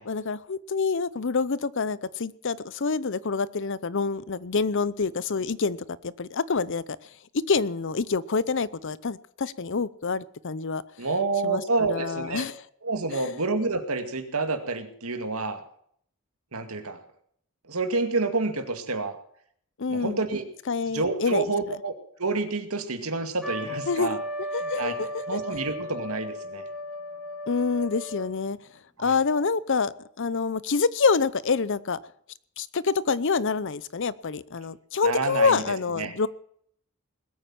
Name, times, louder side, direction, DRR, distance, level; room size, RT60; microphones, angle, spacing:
voice 1, 0.1-6.8 7.3-10.8 11.4-12.6 13.1-13.3 19.8-20.2 20.7-21.4 23.9-24.2 24.5-25.4 27.5-28.6 29.0-29.9 30.2-32.0 32.6-36.3, left 4 dB, 55° left, 19 dB, 0.7 m, -27 dB
voice 2, 11.0-12.5 12.8-15.6 16.5-17.0 17.7-19.2 19.9-20.4 20.9-21.9 22.2-24.2 24.8-26.6 29.0-29.1 35.0-35.6 36.0-36.1, right 3 dB, 75° right, 7 dB, 2.3 m, -28 dB
Trumpet, 23.4-28.4, left 1 dB, ahead, 2.9 m, -35 dB
20.5 x 8.9 x 7.4 m, 0.64 s
head